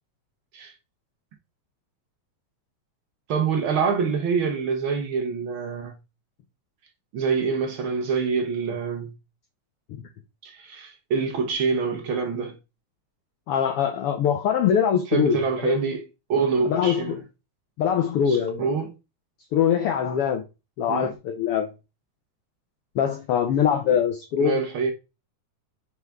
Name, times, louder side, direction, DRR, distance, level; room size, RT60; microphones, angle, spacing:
voice 1, 3.3-6.0 7.1-9.1 10.4-12.6 15.1-17.2 18.3-18.9 20.9-21.1 24.4-24.9, right 5 dB, 65° right, 1.3 m, -26 dB
voice 2, 13.5-15.8 16.7-17.1 17.8-18.7 19.5-20.4 20.8-21.7 22.9-24.6, left 8 dB, 75° left, 1.3 m, -23 dB
6.5 x 4.8 x 3.5 m
omnidirectional pair, 3.4 m